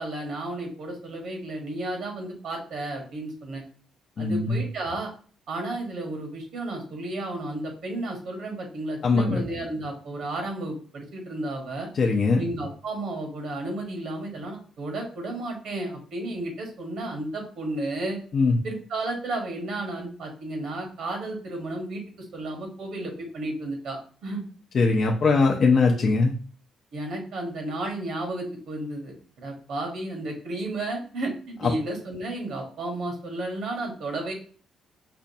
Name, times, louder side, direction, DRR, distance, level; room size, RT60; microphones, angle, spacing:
voice 1, 0.0-3.6 4.2-5.1 5.5-11.9 12.4-18.2 18.6-24.4 25.9-26.0 26.9-34.3, right 2 dB, 70° right, 2 dB, 1.2 m, -33 dB
voice 2, 4.2-4.6 9.0-9.4 11.9-12.4 18.3-18.6 24.7-26.3, left 4 dB, 50° left, 0 dB, 0.5 m, -21 dB
5.0 x 2.2 x 2.7 m, 0.43 s
cardioid pair, 90°, 0 cm